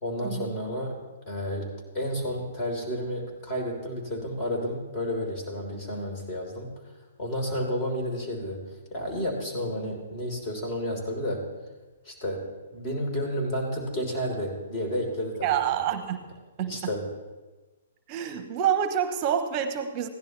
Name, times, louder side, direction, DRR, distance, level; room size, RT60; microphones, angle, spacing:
voice 1, 0.0-1.0 1.3-6.7 7.2-8.6 8.9-11.4 12.0-12.4 12.7-15.8 16.7-17.1, equal, 35° left, 0 dB, 3.5 m, -31 dB
voice 2, 15.4-16.3 16.6-16.9 18.1-20.1, right 9 dB, 35° right, 10 dB, 0.8 m, -27 dB
16.0 x 11.0 x 3.2 m, 1.2 s
hypercardioid pair, 130°, 0 cm